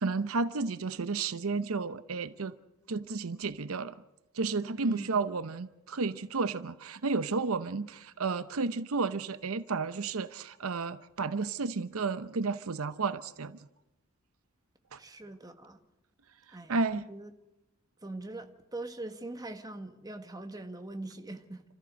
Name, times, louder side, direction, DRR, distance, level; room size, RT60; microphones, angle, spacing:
voice 1, 0.0-2.5 2.9-4.0 4.3-13.6 14.9-15.0 16.5-17.0, right 4 dB, 80° right, 0.7 m, -32 dB
voice 2, 4.8-5.1 15.0-15.8 16.5-17.3 18.0-21.6, right 2 dB, 20° right, 1.5 m, -42 dB
30.0 x 14.0 x 6.3 m
head